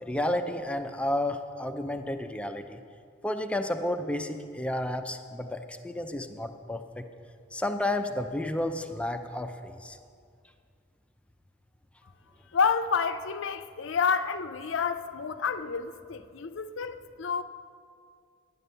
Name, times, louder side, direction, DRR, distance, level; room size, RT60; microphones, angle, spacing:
voice 1, 0.0-2.8 3.2-7.0 7.5-10.0, left 1 dB, 5° left, 0.5 m, -31 dB
voice 2, 12.5-17.4, left 5 dB, 70° left, 0.5 m, -29 dB
9.8 x 9.3 x 6.9 m
head